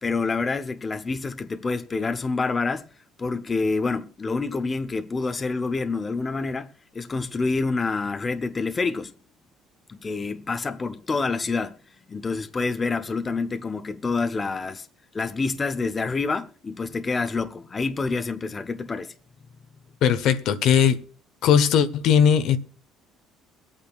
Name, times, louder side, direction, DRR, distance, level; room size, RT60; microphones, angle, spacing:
voice 1, 0.0-2.9 3.2-9.1 9.9-11.8 12.1-14.9 15.1-19.1, left 4 dB, 25° left, 0.8 m, -27 dB
voice 2, 20.0-21.0 21.4-22.6, left 8 dB, 65° left, 1.0 m, -19 dB
24.0 x 8.8 x 2.3 m
cardioid pair, 125°, 0 cm